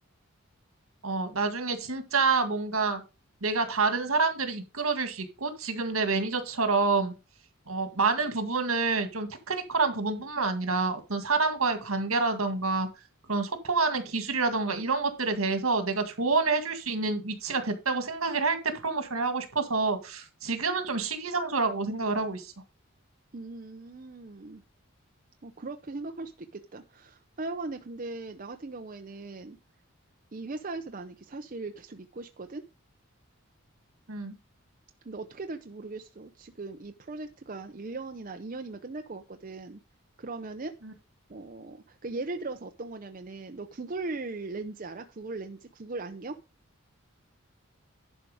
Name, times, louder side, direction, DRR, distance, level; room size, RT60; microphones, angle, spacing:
voice 1, 1.0-3.0 3.4-7.1 7.7-12.9 13.3-22.5 34.1-34.4 40.8-40.9, right 4 dB, 80° right, 8 dB, 1.9 m, -28 dB
voice 2, 23.3-24.6 25.4-29.6 30.3-32.7 35.0-39.8 40.2-40.8 41.3-46.4, right 3 dB, 40° right, 6 dB, 0.6 m, -39 dB
11.0 x 4.8 x 5.1 m, 0.28 s
head